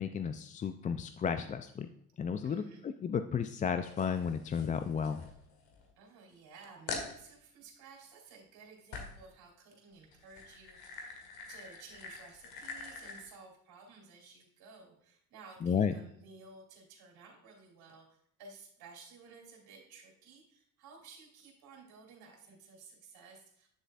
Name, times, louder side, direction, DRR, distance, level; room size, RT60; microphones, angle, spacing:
voice 1, 0.0-1.9 2.2-5.2 15.6-15.9, left 7 dB, 20° left, 10 dB, 0.3 m, -33 dB
voice 2, 2.4-2.8 6.0-23.7, right 4 dB, 60° right, 1 dB, 2.9 m, -55 dB
sound 1, 3.8-5.9 6.3-6.4 6.9-7.2 8.9-9.3 10.0-13.3, left 4 dB, 65° left, 1.7 m, -45 dB
9.6 x 6.5 x 2.4 m, 0.71 s
hypercardioid pair, 60°, 41 cm